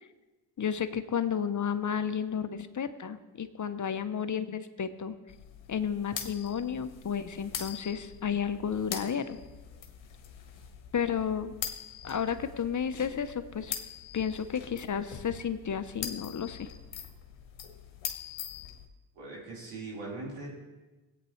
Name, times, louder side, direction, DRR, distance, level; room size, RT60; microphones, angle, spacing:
voice 1, 0.6-5.2 5.7-9.4 10.9-11.5 12.0-13.7 14.1-16.7, left 7 dB, 35° left, 11 dB, 0.8 m, -32 dB
sound 1, 5.3-18.9, left 8 dB, 65° left, 1.3 m, -43 dB
voice 2, 19.1-20.5, right 3 dB, 85° right, -6 dB, 4.4 m, -40 dB
16.5 x 8.8 x 3.2 m, 1.2 s
supercardioid pair, 55°, 50 cm